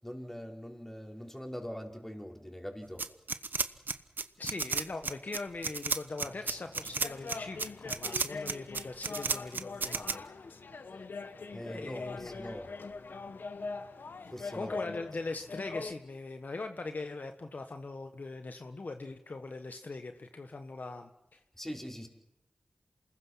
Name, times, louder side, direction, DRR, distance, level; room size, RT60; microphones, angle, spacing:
voice 1, 0.0-3.0 11.5-12.7 14.3-14.8 21.5-22.1, equal, 10° left, 1 dB, 5.1 m, -42 dB
sound 1, 3.0-10.1, right 4 dB, 65° right, 1.1 m, -32 dB
voice 2, 4.4-10.2 11.6-12.4 14.5-21.4, left 3 dB, 55° left, 6 dB, 1.5 m, -41 dB
sound 2, 6.2-15.9, left 4 dB, 70° left, 1.3 m, -43 dB
28.0 x 20.5 x 5.8 m, 0.90 s
cardioid pair, 55°, 3 cm